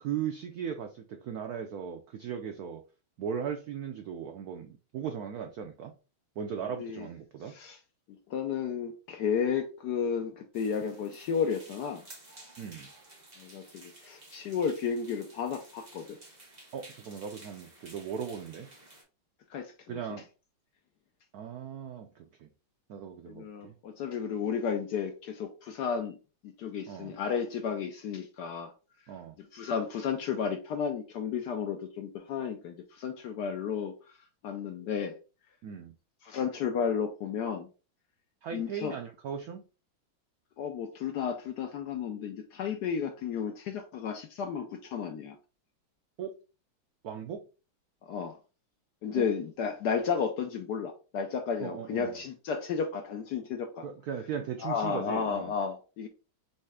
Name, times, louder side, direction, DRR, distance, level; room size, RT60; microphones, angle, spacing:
voice 1, 0.0-2.8 3.2-5.9 6.4-7.6 12.6-12.9 16.7-18.7 19.9-20.2 21.3-22.5 22.9-23.7 26.9-27.2 29.1-29.4 35.6-35.9 38.4-39.6 46.2-46.4 47.0-47.4 49.2-49.3 51.6-52.2 53.8-55.5, right 7 dB, 85° right, 0.8 m, -38 dB
voice 2, 6.6-7.1 7.4-7.8 8.1-12.0 13.4-16.2 19.5-20.0 23.3-26.2 26.4-28.7 29.4-33.9 34.4-35.2 36.2-37.7 38.5-38.9 40.6-45.4 48.0-48.4 49.0-53.8 54.6-56.1, left 6 dB, 70° left, 1.0 m, -33 dB
sound 1, 10.5-19.0, right 2 dB, 25° right, 1.3 m, -53 dB
4.2 x 3.3 x 3.5 m
omnidirectional pair, 2.2 m